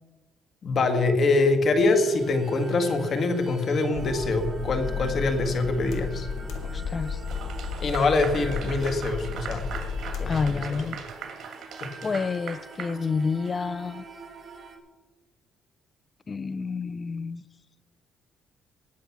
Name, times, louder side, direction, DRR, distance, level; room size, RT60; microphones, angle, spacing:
voice 1, 0.6-6.3 7.8-9.7 10.2-10.8 11.8-11.9, left 3 dB, 50° left, 1.9 m, -24 dB
sound 1, 1.8-14.8, right 3 dB, 30° right, 2.5 m, -44 dB
sound 2, 3.9-10.5, left 6 dB, 80° left, 2.0 m, -33 dB
voice 2, 6.6-7.2 10.3-11.0 12.0-14.0 16.3-17.4, left 5 dB, 35° left, 0.5 m, -29 dB
Clapping / Applause, 7.3-13.6, right 7 dB, 65° right, 2.6 m, -40 dB
19.0 x 7.6 x 6.1 m
cardioid pair, 105°, 0 cm